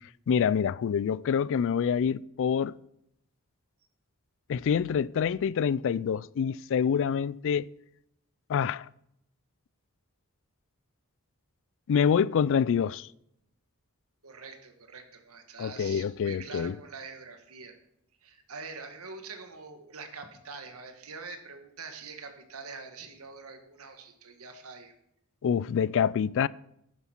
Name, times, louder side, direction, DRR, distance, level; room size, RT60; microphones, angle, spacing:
voice 1, 0.3-2.8 4.5-7.7 8.5-8.9 11.9-13.1 15.6-16.8 25.4-26.5, left 7 dB, 60° left, 0.3 m, -26 dB
voice 2, 14.2-17.8 18.2-24.9, right 4 dB, 75° right, 1.7 m, -44 dB
11.0 x 9.9 x 4.5 m
head